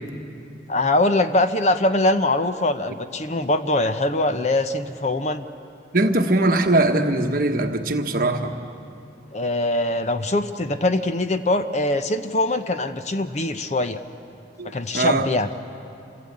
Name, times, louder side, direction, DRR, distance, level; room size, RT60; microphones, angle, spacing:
voice 1, 0.7-5.5 9.3-14.0 14.6-15.5, left 2 dB, 35° left, 9 dB, 0.7 m, -22 dB
voice 2, 5.9-8.6 14.6-15.3, right 2 dB, 50° right, 5 dB, 1.3 m, -21 dB
27.0 x 16.5 x 8.6 m, 2.6 s
head